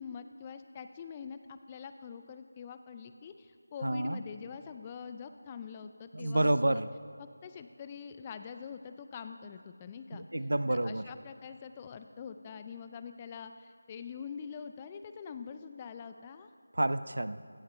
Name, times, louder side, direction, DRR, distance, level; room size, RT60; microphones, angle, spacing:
voice 1, 0.0-6.8 7.2-10.3 10.7-16.5, left 6 dB, 20° left, 9 dB, 0.4 m, -45 dB
voice 2, 3.8-4.2 6.1-6.9 10.3-11.0 16.7-17.4, right 1 dB, 70° right, 14 dB, 0.5 m, -29 dB
16.5 x 6.5 x 5.6 m, 2.2 s
figure-of-eight pair, 165°, 0 cm